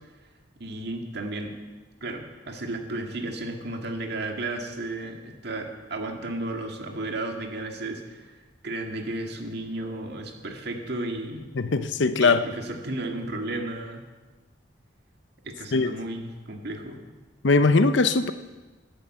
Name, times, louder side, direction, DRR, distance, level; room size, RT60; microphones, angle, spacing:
voice 1, 0.6-1.6 2.0-8.3 8.6-11.5 12.2-14.0 15.4-17.0, right 2 dB, 60° right, 2.0 m, -33 dB
voice 2, 11.6-12.4 15.7-15.9 17.4-18.3, left 3 dB, 75° left, 0.8 m, -20 dB
12.5 x 11.0 x 7.8 m
head